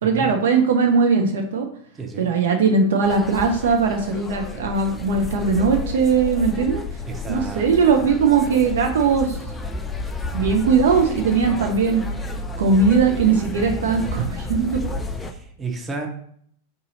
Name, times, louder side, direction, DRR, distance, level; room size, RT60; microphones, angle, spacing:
voice 1, 0.0-1.7 2.2-6.8 7.3-9.4 10.3-12.0 12.6-14.9, right 5 dB, 60° right, 3 dB, 0.4 m, -19 dB
voice 2, 2.0-2.3 7.1-7.6 15.3-16.1, right 4 dB, 15° right, 1 dB, 0.8 m, -32 dB
sound 1, 3.0-15.3, left 2 dB, 10° left, 0.4 m, -31 dB
3.6 x 2.7 x 3.8 m, 0.63 s
figure-of-eight pair, 90°, 0 cm